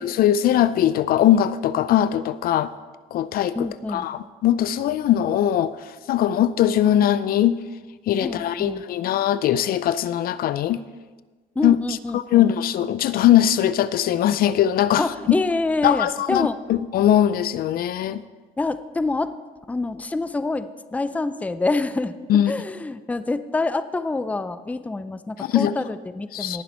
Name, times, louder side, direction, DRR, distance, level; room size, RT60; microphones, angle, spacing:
voice 1, 0.0-2.7 3.1-7.6 8.1-10.8 11.6-15.0 15.8-18.2 22.3-22.5 25.4-25.7 26.3-26.6, left 11 dB, 60° left, 15 dB, 0.5 m, -21 dB
voice 2, 3.6-4.1 8.2-8.8 11.6-12.5 15.0-16.8 18.6-19.3 19.7-22.1 22.5-26.6, left 3 dB, 10° left, 12 dB, 0.5 m, -26 dB
19.0 x 7.0 x 4.3 m, 1.3 s
cardioid pair, 110°, 17 cm